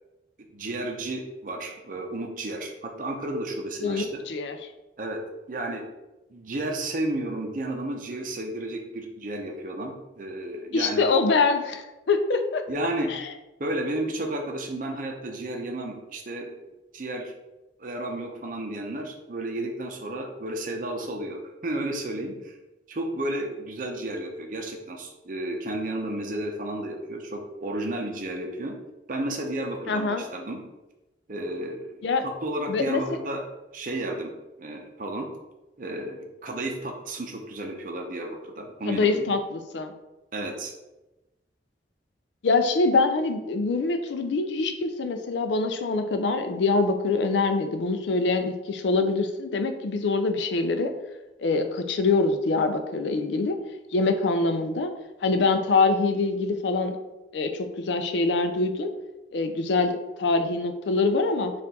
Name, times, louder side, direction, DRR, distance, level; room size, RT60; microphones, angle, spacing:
voice 1, 0.5-4.2 5.0-5.2 5.5-5.8 6.3-11.1 12.7-13.1 13.6-16.5 16.9-17.3 17.8-22.5 22.9-28.7 29.1-30.6 31.3-33.5 33.7-34.3 34.6-35.3 35.8-39.2 40.3-40.7, right 1 dB, 45° right, 2 dB, 0.6 m, -32 dB
voice 2, 3.8-4.6 10.7-12.6 13.1-13.3 29.9-30.2 32.0-32.3 32.7-33.0 38.9-39.9 42.4-50.9 51.4-53.6 53.9-54.9 55.2-57.0 57.3-58.9 59.3-61.5, left 3 dB, 80° left, 7 dB, 0.4 m, -24 dB
4.3 x 2.5 x 4.1 m, 1.0 s
head